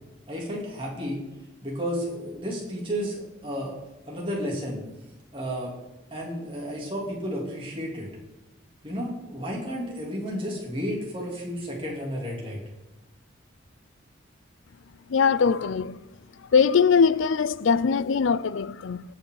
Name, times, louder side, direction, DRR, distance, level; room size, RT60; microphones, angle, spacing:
voice 1, 0.3-1.2 1.6-3.7 4.1-4.8 5.3-5.7 6.1-8.1 8.8-12.6, equal, 25° right, 3.2 m, -32 dB
voice 2, 15.1-16.0 16.5-19.0, left 6 dB, 80° left, 0.4 m, -21 dB
18.0 x 6.1 x 4.0 m
head